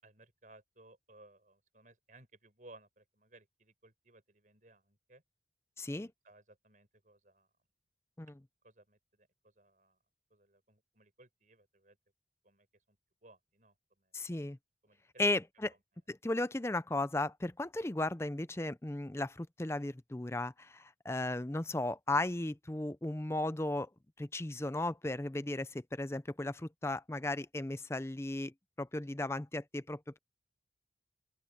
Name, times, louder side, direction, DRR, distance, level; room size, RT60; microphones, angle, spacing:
voice 1, 0.0-5.2 5.9-7.5 8.6-10.0 10.3-12.0 12.4-14.1 14.8-15.4 15.7-15.8, right 2 dB, 45° right, 6.0 m, -61 dB
voice 2, 5.8-6.1 8.2-8.3 14.1-14.6 15.2-15.7 16.1-23.9 24.2-30.2, left 2 dB, 15° left, 0.5 m, -35 dB
open air
head